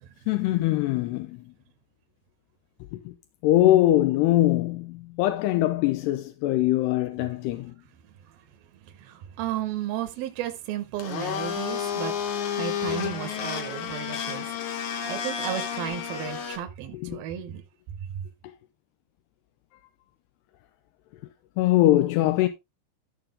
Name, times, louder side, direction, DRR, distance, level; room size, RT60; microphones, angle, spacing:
voice 1, 0.3-1.4 2.9-3.1 3.4-7.7 16.9-17.2 21.6-22.5, left 15 dB, 85° left, 2.8 m, -22 dB
voice 2, 8.8-12.1 12.6-17.6 18.1-18.2, right 11 dB, 70° right, 2.6 m, -34 dB
Domestic sounds home sounds, 11.0-16.6, left 8 dB, 60° left, 2.4 m, -31 dB
13.5 x 6.0 x 3.6 m
omnidirectional pair, 4.7 m